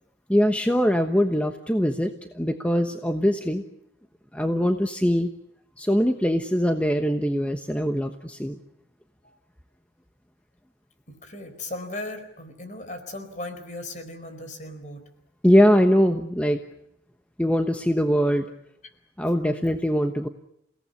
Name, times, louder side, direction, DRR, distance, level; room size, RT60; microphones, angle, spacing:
voice 1, 0.3-3.6 4.3-5.3 5.8-8.6 15.4-16.6 17.4-18.4 19.2-20.3, equal, 5° left, 6 dB, 1.1 m, -22 dB
voice 2, 11.1-15.0, left 2 dB, 40° left, 8 dB, 4.6 m, -37 dB
29.5 x 17.5 x 9.8 m, 0.77 s
head